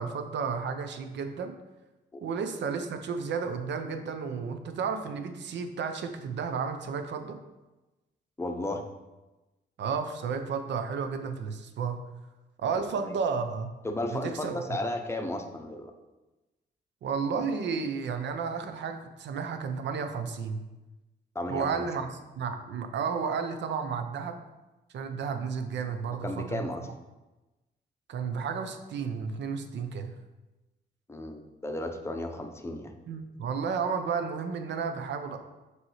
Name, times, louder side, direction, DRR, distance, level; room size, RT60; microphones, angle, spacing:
voice 1, 0.0-1.5 2.2-7.4 9.8-12.0 12.6-13.7 14.1-14.8 17.0-20.6 21.5-22.1 22.4-24.4 24.9-26.7 28.1-30.1 33.1-35.4, right 5 dB, 75° right, 7 dB, 0.6 m, -32 dB
voice 2, 8.4-8.8 13.0-13.2 13.8-15.9 21.3-21.8 26.1-26.9 31.1-32.9, left 1 dB, 15° left, 4 dB, 0.6 m, -34 dB
5.4 x 3.1 x 5.6 m, 1.1 s
cardioid pair, 115°, 18 cm